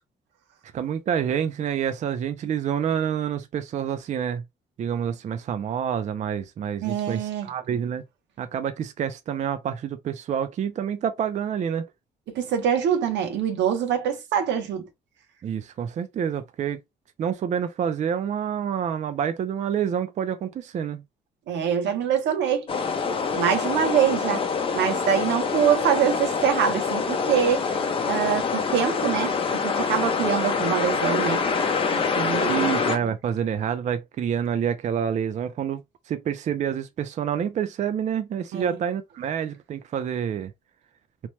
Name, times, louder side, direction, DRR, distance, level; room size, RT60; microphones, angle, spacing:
voice 1, 0.7-4.4 4.8-8.0 8.4-11.9 15.4-16.8 17.2-21.0 32.5-35.8 36.1-40.5, right 8 dB, 45° right, 0.4 m, -28 dB
voice 2, 6.8-7.5 12.3-14.9 21.5-22.7 23.3-24.4 24.7-27.6 28.1-31.5 31.9-32.7 38.5-38.8, right 8 dB, 90° right, 0.8 m, -24 dB
sound 1, 22.7-33.0, left 5 dB, 30° left, 0.6 m, -25 dB
2.9 x 2.1 x 3.1 m
cardioid pair, 135°, 18 cm